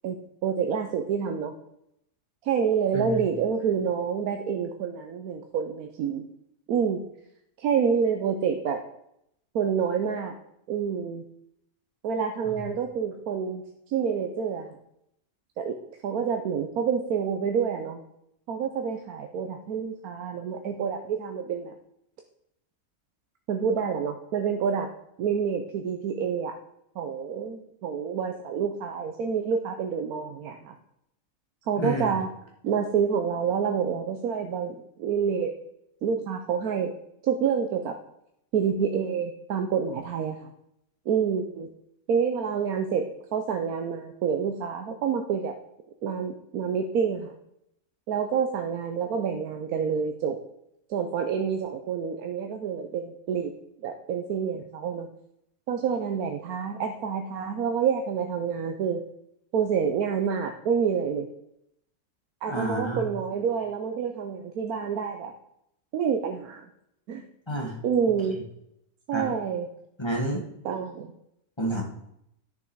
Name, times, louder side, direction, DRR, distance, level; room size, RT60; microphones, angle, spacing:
voice 1, 0.4-1.5 2.4-6.2 6.7-7.0 7.6-8.8 9.5-10.3 10.7-11.2 12.0-13.6 13.9-14.7 15.6-15.8 16.0-18.0 18.5-21.7 23.5-24.9 25.2-26.5 27.0-30.7 31.7-32.3 32.6-35.5 36.0-36.9 37.2-38.0 38.5-40.5 41.1-41.7 42.1-43.1 43.3-45.5 46.0-47.3 48.1-50.4 50.9-53.5 53.8-55.1 55.7-59.0 59.5-61.3 62.4-65.3 65.9-66.7 67.1-67.2 67.8-68.4 69.1-69.7 70.6-71.1, right 7 dB, 75° right, 4 dB, 1.2 m, -28 dB
voice 2, 2.9-3.3 12.4-12.6 31.8-32.1 62.4-63.1 67.5-67.8 69.1-69.3 70.0-70.4 71.6-71.8, right 1 dB, 20° left, -1 dB, 1.5 m, -29 dB
11.0 x 6.8 x 4.6 m, 0.78 s
omnidirectional pair, 1.6 m